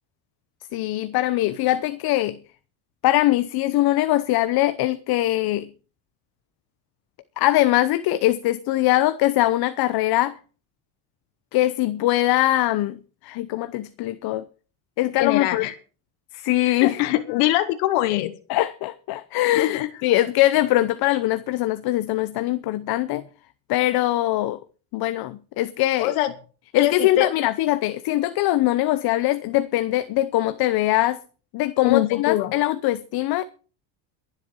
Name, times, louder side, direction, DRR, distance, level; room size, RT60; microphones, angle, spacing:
voice 1, 0.7-2.4 3.0-5.7 7.4-10.4 11.5-14.4 15.0-15.6 16.3-17.0 18.5-23.2 23.7-24.6 24.9-26.1 26.7-31.2 31.5-33.4, left 15 dB, 50° left, 0.8 m, -22 dB
voice 2, 15.2-15.7 16.6-18.4 19.5-19.9 26.0-26.3 26.8-27.3 31.8-32.5, left 15 dB, 80° left, 1.2 m, -23 dB
22.5 x 7.9 x 4.5 m
cardioid pair, 135°, 48 cm